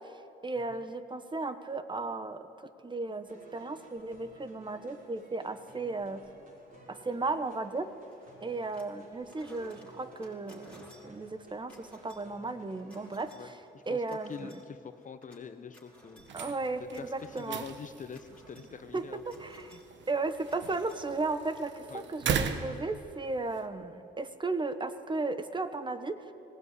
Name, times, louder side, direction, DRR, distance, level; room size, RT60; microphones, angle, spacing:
voice 1, 0.0-2.5 2.8-6.2 6.9-7.9 8.4-13.5 13.9-14.6 16.3-17.6 18.9-19.0 19.4-19.8 20.1-26.3, right 3 dB, 25° right, 11 dB, 1.2 m, -35 dB
sound 1, 3.2-13.1, right 2 dB, 45° right, 5.1 m, -55 dB
sound 2, 8.1-9.0 9.2-21.6, equal, 5° left, 5.0 m, -59 dB
voice 2, 13.3-14.0 14.3-16.5 17.0-19.2 19.7-19.8 21.9-22.1, left 6 dB, 40° left, 10 dB, 1.1 m, -45 dB
sound 3, 16.2-23.7, right 7 dB, 65° right, 1.4 m, -39 dB
19.5 x 16.5 x 9.8 m, 2.9 s
cardioid pair, 90°, 20 cm